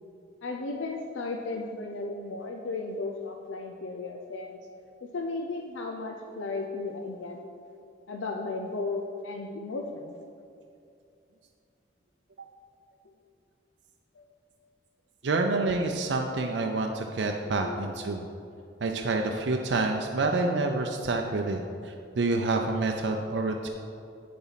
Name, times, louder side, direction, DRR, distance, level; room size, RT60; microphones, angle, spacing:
voice 1, 0.4-4.6 5.0-7.4 8.1-10.1 13.1-13.2 14.2-14.3 17.4-17.8, left 3 dB, 85° left, 2 dB, 0.5 m, -35 dB
voice 2, 15.2-18.3 18.8-23.7, right 3 dB, 70° right, 2 dB, 0.5 m, -28 dB
8.6 x 7.0 x 4.1 m, 2.6 s
head